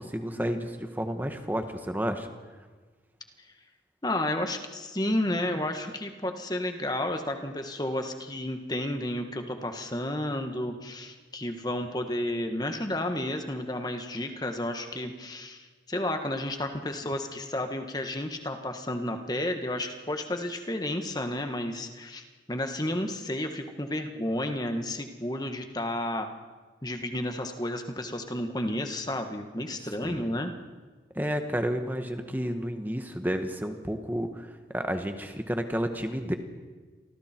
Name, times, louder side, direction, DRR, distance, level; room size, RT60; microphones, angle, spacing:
voice 1, 0.0-2.3 30.0-30.3 31.1-36.3, equal, 10° right, 6 dB, 1.4 m, -31 dB
voice 2, 4.0-26.3 26.8-30.5, left 1 dB, 20° left, 5 dB, 1.7 m, -32 dB
29.5 x 24.0 x 4.6 m, 1.4 s
head